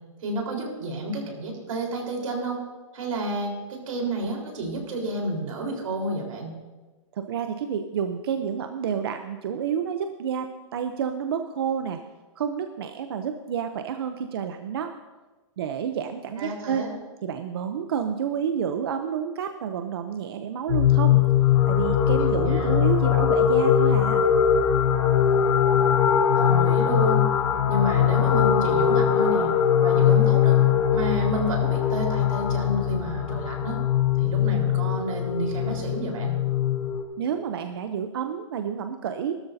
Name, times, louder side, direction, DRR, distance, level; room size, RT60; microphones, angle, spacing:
voice 1, 0.2-2.6 2.9-6.5 16.4-16.9 22.2-22.8 26.4-27.3 27.7-29.5 29.8-30.6 30.9-33.8 34.2-36.4, right 1 dB, 80° right, 0 dB, 4.0 m, -30 dB
voice 2, 7.1-12.0 12.4-14.9 15.6-16.9 17.2-21.2 21.7-24.3 37.2-39.4, right 8 dB, 50° right, 7 dB, 0.6 m, -29 dB
sound 1, 20.7-37.0, left 9 dB, 90° left, 2.9 m, -21 dB
18.5 x 13.0 x 2.7 m, 1.2 s
hypercardioid pair, 180°, 17 cm